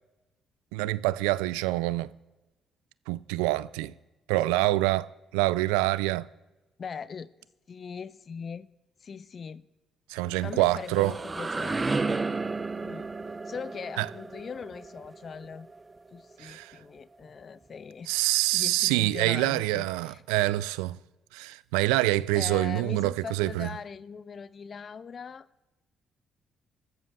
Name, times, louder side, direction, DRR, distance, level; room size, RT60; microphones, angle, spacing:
voice 1, 0.7-2.1 3.1-3.9 4.3-5.1 5.3-6.3 10.1-11.1 14.0-14.1 16.4-16.7 18.1-21.0 21.3-23.7, right 18 dB, 85° right, 0.3 m, -26 dB
voice 2, 6.8-7.3 7.7-8.7 9.0-9.6 10.2-12.0 12.8-13.1 13.5-15.7 16.1-18.2 18.5-20.2 22.3-25.7, left 6 dB, 50° left, 0.6 m, -40 dB
sound 1, 10.6-16.3, right 3 dB, 30° right, 0.7 m, -33 dB
23.0 x 14.0 x 2.3 m
hypercardioid pair, 50°, 0 cm